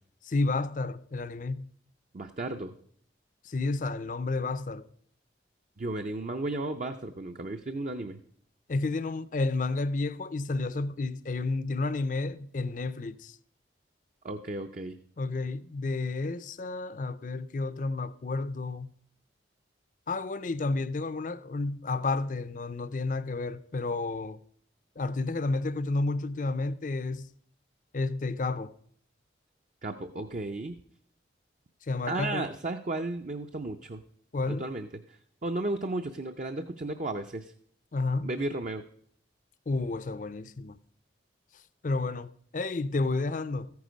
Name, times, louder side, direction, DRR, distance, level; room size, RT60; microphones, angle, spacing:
voice 1, 0.2-1.7 3.4-4.8 8.7-13.4 15.2-18.9 20.1-24.4 25.0-27.3 27.9-28.7 31.9-32.5 34.3-34.7 37.9-38.3 39.7-40.8 41.8-43.7, left 3 dB, 45° left, 0.5 m, -31 dB
voice 2, 2.1-2.7 5.8-8.2 14.2-15.0 29.8-30.8 32.1-34.0 34.5-37.5 38.2-38.8, right 2 dB, 45° right, 0.6 m, -34 dB
14.0 x 9.5 x 5.2 m
head